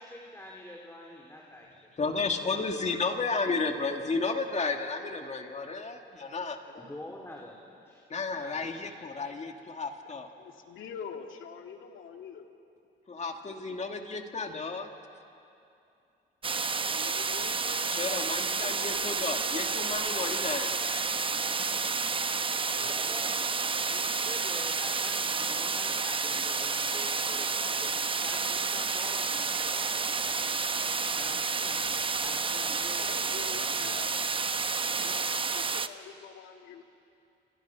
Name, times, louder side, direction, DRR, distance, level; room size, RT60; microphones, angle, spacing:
voice 1, 0.0-1.7 2.5-2.6 6.8-8.0 8.3-8.8 22.8-30.0 31.2-33.1 33.4-33.9, left 1 dB, 10° left, -1 dB, 3.4 m, -47 dB
voice 2, 2.0-6.6 8.1-10.3 13.1-14.9 17.9-21.1, left 4 dB, 35° left, 4 dB, 2.3 m, -33 dB
voice 3, 6.6-7.0 10.0-12.5 16.8-18.2 18.6-19.7 22.6-23.3 23.7-24.3 32.9-34.1 35.0-36.8, left 7 dB, 80° left, 4 dB, 2.3 m, -46 dB
sound 1, 16.4-35.9, right 4 dB, 25° right, 0.9 m, -30 dB
28.5 x 27.5 x 6.1 m, 2.7 s
cardioid pair, 90°, 20 cm